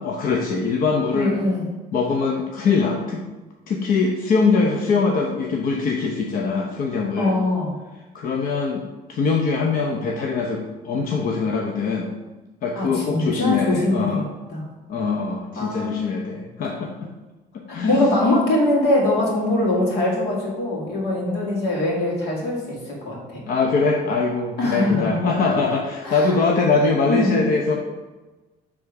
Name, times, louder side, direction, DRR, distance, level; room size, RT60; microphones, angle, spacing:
voice 1, 0.0-1.4 1.9-3.3 3.7-7.3 8.1-8.8 9.1-12.1 12.6-14.2 14.9-17.1 17.5-18.0 23.5-27.8, left 4 dB, 55° left, 0 dB, 0.8 m, -22 dB
voice 2, 1.1-1.7 4.7-4.8 7.2-7.7 12.7-14.2 14.5-14.6 15.6-16.1 17.7-23.4 24.6-25.2 26.0-26.4 27.1-27.3, left 2 dB, 80° left, -3 dB, 2.2 m, -22 dB
7.0 x 3.5 x 4.8 m, 1.2 s
cardioid pair, 110°, 17 cm